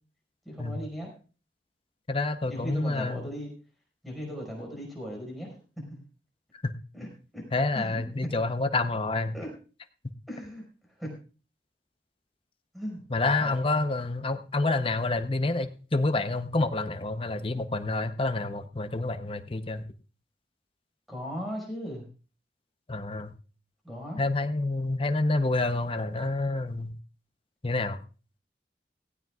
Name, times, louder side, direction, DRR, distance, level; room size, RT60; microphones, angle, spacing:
voice 1, 0.5-1.1 2.5-3.5 4.0-6.0 6.9-7.1 7.3-7.4 7.7-8.5 9.3-9.5 10.3-10.6 11.0-11.1 12.7-13.0 13.4-13.5 21.1-22.1 23.8-24.2, equal, ahead, -2 dB, 5.2 m, -37 dB
voice 2, 2.1-3.3 6.6-6.7 7.5-9.4 13.1-19.8 22.9-23.3 24.2-27.0 27.6-28.0, left 2 dB, 30° left, 9 dB, 0.8 m, -28 dB
17.0 x 15.5 x 2.4 m, 0.36 s
head